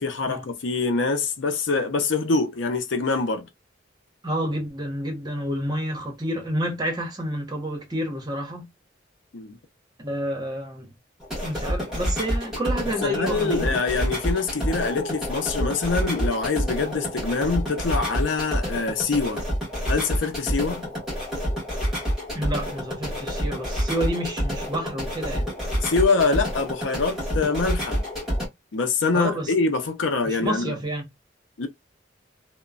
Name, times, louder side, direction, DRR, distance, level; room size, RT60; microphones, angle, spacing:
voice 1, 0.0-3.5 9.3-9.6 13.0-19.4 19.9-20.8 25.8-28.0 28.7-30.8 31.6-31.7, left 4 dB, 80° left, 0.6 m, -25 dB
voice 2, 4.2-8.7 10.0-10.9 11.4-13.7 22.3-25.5 29.1-29.5 30.2-31.0, equal, 20° right, 1.0 m, -29 dB
sound 1, 11.2-28.5, equal, ahead, 1.5 m, -28 dB
3.0 x 2.1 x 2.4 m
head